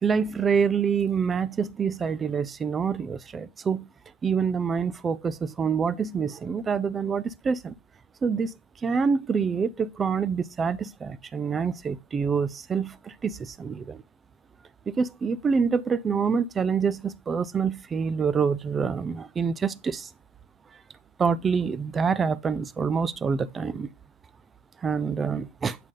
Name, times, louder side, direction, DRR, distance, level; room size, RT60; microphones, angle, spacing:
voice 1, 0.0-3.9 4.2-7.7 8.2-8.5 8.8-14.0 14.9-20.1 21.2-23.9 24.8-25.8, right 6 dB, 20° right, 0.4 m, -26 dB
7.5 x 3.6 x 3.7 m
figure-of-eight pair, 90°, 0 cm